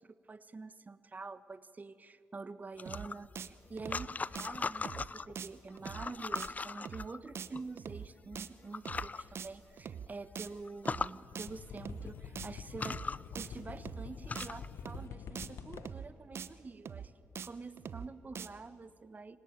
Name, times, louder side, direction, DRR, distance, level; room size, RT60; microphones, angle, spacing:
voice 1, 0.0-13.0 13.3-17.1 17.4-19.4, right 3 dB, 35° right, 14 dB, 1.2 m, -47 dB
sound 1, 2.8-5.3 5.8-7.6 8.3-8.4 8.7-9.2 9.7-9.8 10.1-10.2 10.7-11.1 12.1-12.2 12.7-14.7, left 4 dB, 35° left, 0.5 m, -39 dB
sound 2, 2.9-3.1 3.4-3.5 3.8-4.1 4.3-4.5 4.9-5.1 5.4-5.5 5.8-6.1 6.4-6.5 6.9-7.1 7.3-7.5 7.8-8.1 8.4-8.5 8.9-9.1 9.4-9.5 9.8-10.1 10.4-10.5 10.9-11.1 11.3-11.5 11.8-12.1 12.4-12.5 12.9-13.1 13.3-13.5 13.8-14.1 14.4-14.5 14.9-15.1 15.4-15.5 15.8-16.1 16.3-16.5 16.9-17.1 17.4-17.5 17.8-18.1 18.3-18.5, right 7 dB, 70° right, 0.9 m, -43 dB
sound 3, 9.2-9.4 10.9-11.0 11.1-16.1 18.0-18.1, left 7 dB, 85° left, 1.2 m, -48 dB
25.0 x 18.5 x 9.1 m, 2.5 s
cardioid pair, 65°, 5 cm